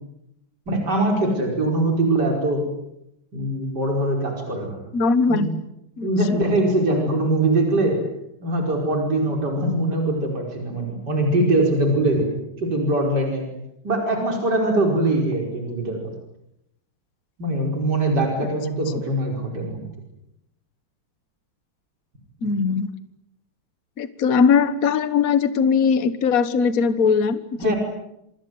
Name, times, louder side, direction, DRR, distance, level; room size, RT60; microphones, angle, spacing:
voice 1, 0.7-2.6 3.3-4.8 5.3-5.4 6.0-8.0 8.4-12.3 12.6-13.5 13.8-16.1 17.4-19.8 27.6-27.8, right 1 dB, 50° right, 1 dB, 5.6 m, -22 dB
voice 2, 4.9-5.6 6.0-6.1 22.4-22.9 24.0-27.7, left 5 dB, 45° left, 12 dB, 1.7 m, -20 dB
28.0 x 25.5 x 7.9 m, 0.83 s
omnidirectional pair, 2.3 m